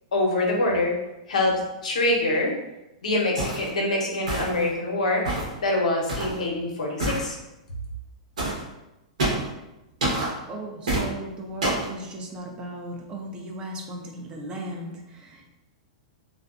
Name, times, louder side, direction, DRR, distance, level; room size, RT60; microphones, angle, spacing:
voice 1, 0.1-0.9 1.3-2.5 3.0-5.3 5.6-7.3, left 2 dB, 90° left, -1 dB, 0.7 m, -24 dB
sound 1, 3.4-3.7 4.3-4.7 5.3-5.6 6.1-6.4 7.0-7.3 8.4-8.6 9.2-9.5 10.0-10.3 10.9-11.1 11.6-11.9, right 2 dB, 90° right, 1.0 m, -26 dB
voice 2, 10.5-15.5, right 1 dB, 25° right, 1 dB, 0.5 m, -36 dB
2.5 x 2.1 x 2.4 m, 0.94 s
hypercardioid pair, 130°, 4 cm